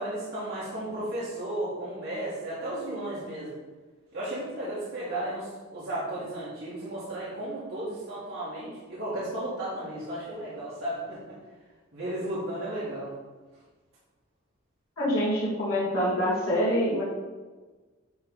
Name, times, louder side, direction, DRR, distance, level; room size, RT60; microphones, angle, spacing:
voice 1, 0.0-3.6 4.1-11.2 11.9-13.1, right 1 dB, 65° right, -10 dB, 2.3 m, -34 dB
voice 2, 15.0-17.0, equal, 75° left, -9 dB, 2.4 m, -25 dB
10.0 x 3.5 x 4.2 m, 1.3 s
head